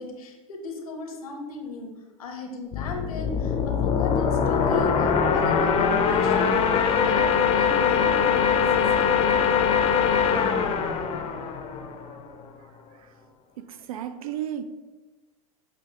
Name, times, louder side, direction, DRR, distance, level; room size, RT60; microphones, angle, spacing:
voice 1, 0.0-1.9 2.2-6.6 7.1-9.4, left 3 dB, 80° left, 0.9 m, -36 dB
sound 1, 2.7-12.3, left 6 dB, 35° left, 0.5 m, -22 dB
voice 2, 13.6-14.6, right 10 dB, 75° right, 0.4 m, -33 dB
6.6 x 2.6 x 2.9 m
hypercardioid pair, 105°, 18 cm